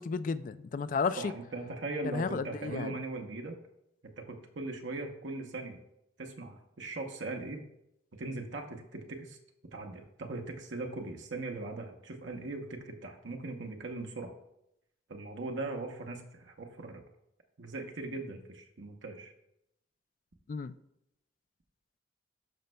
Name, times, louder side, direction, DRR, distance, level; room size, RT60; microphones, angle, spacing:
voice 1, 0.0-1.3 2.0-2.9 20.5-20.7, left 5 dB, 45° left, 0.3 m, -33 dB
voice 2, 1.2-3.6 4.0-5.8 6.2-7.6 8.1-9.4 9.7-14.3 15.1-17.0 17.6-19.3, right 2 dB, 80° right, 0.9 m, -39 dB
12.0 x 5.2 x 2.2 m
head